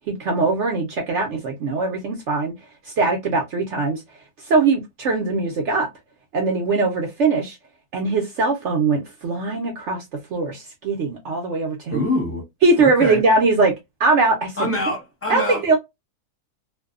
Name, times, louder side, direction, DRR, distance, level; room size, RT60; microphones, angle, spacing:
voice 1, 0.1-2.5 2.8-4.0 4.4-5.9 6.3-7.6 7.9-12.0 12.6-13.7 14.0-14.5 15.3-15.8, right 3 dB, 65° right, 0.7 m, -21 dB
voice 2, 11.9-12.4 12.8-13.2 14.6-15.6, left 1 dB, 10° left, 0.7 m, -25 dB
2.6 x 2.2 x 2.3 m
omnidirectional pair, 1.7 m